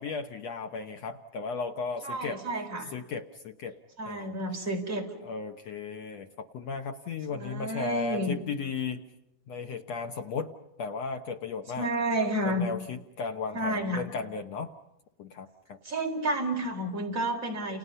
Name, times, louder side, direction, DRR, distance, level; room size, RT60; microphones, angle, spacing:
voice 1, 0.0-2.4 2.9-3.8 4.1-4.4 5.2-9.1 9.5-10.5 10.8-11.9 12.4-14.7 15.2-15.8, left 5 dB, 65° left, 5 dB, 1.7 m, -35 dB
voice 2, 2.0-2.9 4.0-5.1 7.3-8.3 11.8-12.7 13.5-14.0 15.8-17.8, right 1 dB, 20° right, 1 dB, 4.6 m, -30 dB
30.0 x 29.5 x 5.6 m, 0.90 s
omnidirectional pair, 4.3 m